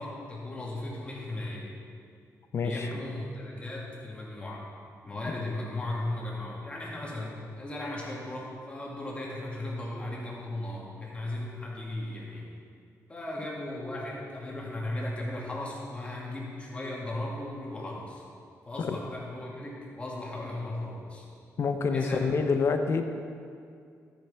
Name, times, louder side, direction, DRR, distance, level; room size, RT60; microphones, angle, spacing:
voice 1, 0.0-1.7 2.6-4.7 5.0-12.5 13.1-18.2 18.6-21.3 21.9-22.3, left 1 dB, 20° left, -4 dB, 2.0 m, -36 dB
voice 2, 2.5-2.9 18.8-19.0 21.6-23.0, left 5 dB, 50° left, 7 dB, 0.7 m, -27 dB
12.5 x 9.0 x 3.4 m, 2.3 s
cardioid pair, 135°, 6 cm